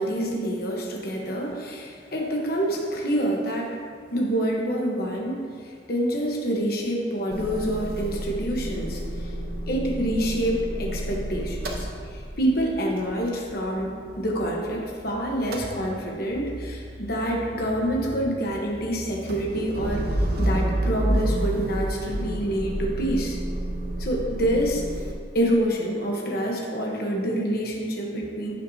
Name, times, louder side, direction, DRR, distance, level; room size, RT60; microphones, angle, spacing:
voice 1, 0.0-3.7 4.1-9.3 9.7-20.1 20.4-23.4 24.0-24.8 25.3-28.6, right 1 dB, 55° left, -1 dB, 1.2 m, -27 dB
Motor vehicle (road) / Engine starting / Idling, 7.3-15.0 15.3-25.1, right 1 dB, 55° right, 0.9 m, -30 dB
14.5 x 5.9 x 2.8 m, 2.1 s
head